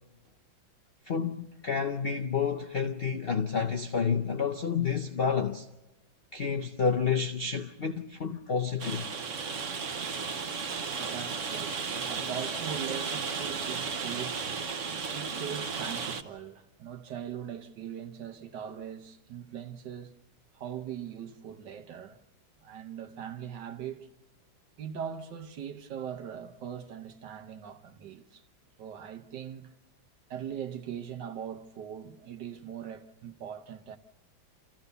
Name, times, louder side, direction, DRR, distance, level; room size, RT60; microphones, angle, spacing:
voice 1, 1.1-5.7 6.3-9.1, left 6 dB, 65° left, 0.5 m, -29 dB
Rain, 8.8-16.2, right 5 dB, 45° right, 1.1 m, -34 dB
voice 2, 10.8-11.8 12.1-14.5 15.1-20.1 20.5-22.2 22.6-24.1 24.8-28.4 28.8-29.7 30.3-34.0, right 8 dB, 65° right, 1.6 m, -40 dB
28.5 x 15.0 x 6.8 m
omnidirectional pair, 2.1 m